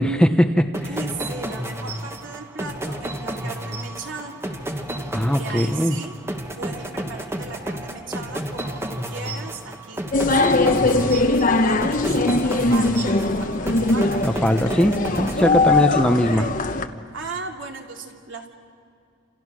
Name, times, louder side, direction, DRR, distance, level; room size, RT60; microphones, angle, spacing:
voice 1, 0.0-0.9 5.1-6.0 14.2-16.5, equal, 5° left, 6 dB, 0.8 m, -20 dB
sound 1, 0.7-16.0, right 1 dB, 15° right, 1.4 m, -32 dB
voice 2, 0.9-4.4 5.3-6.1 6.5-14.2 15.9-16.5 17.1-18.5, right 3 dB, 70° right, 1 dB, 2.7 m, -37 dB
sound 2, 10.1-16.9, left 2 dB, 40° left, 1.0 m, -20 dB
30.0 x 28.0 x 6.2 m, 2.4 s
head